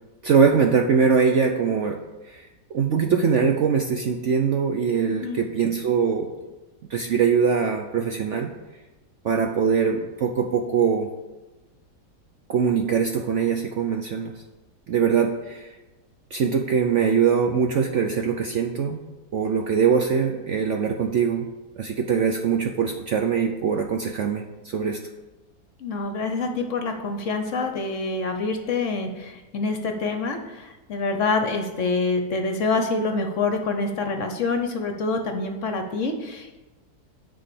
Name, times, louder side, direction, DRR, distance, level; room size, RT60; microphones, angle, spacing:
voice 1, 0.2-6.5 6.9-8.5 9.2-11.1 12.5-14.3 14.9-15.7 16.3-21.5 21.7-25.0, right 6 dB, 65° right, 3 dB, 0.7 m, -22 dB
voice 2, 5.1-5.4 25.8-36.6, left 3 dB, 55° left, 5 dB, 1.0 m, -26 dB
9.6 x 4.1 x 6.8 m, 1.1 s
omnidirectional pair, 1.8 m